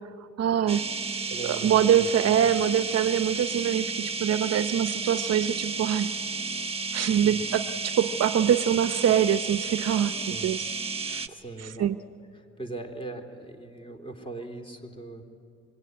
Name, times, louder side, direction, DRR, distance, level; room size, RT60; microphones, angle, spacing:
voice 1, 0.4-0.9 1.4-6.1 6.9-10.6 11.1-11.3 11.8-12.0, right 9 dB, 55° right, 12 dB, 0.8 m, -24 dB
sound 1, 0.7-11.3, right 4 dB, 20° right, 1.2 m, -32 dB
voice 2, 1.3-2.1 2.4-2.6 7.2-7.4 10.3-10.5 11.3-11.9 12.3-15.2, right 2 dB, 20° left, 5 dB, 3.4 m, -40 dB
25.5 x 23.0 x 9.6 m, 2.6 s
cardioid pair, 90°, 30 cm